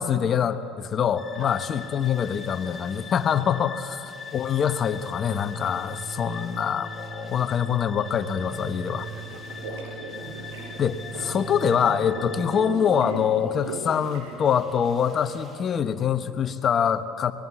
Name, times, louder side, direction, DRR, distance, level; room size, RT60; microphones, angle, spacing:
voice 1, 0.0-4.0 4.3-9.1 10.8-17.3, left 8 dB, 45° left, 9 dB, 1.2 m, -24 dB
sound 1, 1.2-12.7, left 1 dB, 25° left, 2.5 m, -39 dB
sound 2, 1.4-15.7, right 1 dB, 35° right, 7.5 m, -56 dB
voice 2, 6.3-6.7 9.1-10.2 11.8-11.9 12.5-12.6, right 5 dB, 65° right, 5 dB, 2.8 m, -50 dB
sound 3, 8.9-15.6, right 3 dB, 85° right, 5.3 m, -38 dB
23.5 x 19.0 x 7.7 m, 2.7 s
supercardioid pair, 85°, 0 cm